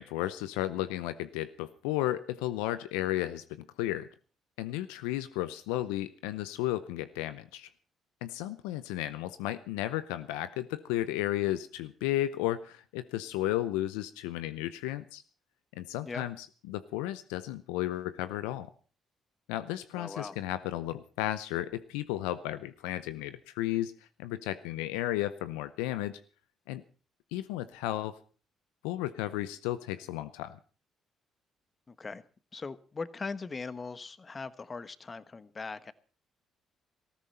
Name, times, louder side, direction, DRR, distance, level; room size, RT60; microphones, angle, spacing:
voice 1, 0.0-4.1 4.6-7.7 8.2-15.2 15.7-18.7 19.5-23.9 24.2-26.2 26.7-26.8 27.3-28.2 28.8-30.6, left 14 dB, 85° left, 13 dB, 0.6 m, -33 dB
voice 2, 19.9-20.4 31.9-32.2 32.5-35.9, left 4 dB, 35° left, 14 dB, 1.3 m, -40 dB
18.5 x 14.5 x 4.3 m, 0.39 s
hypercardioid pair, 55°, 0 cm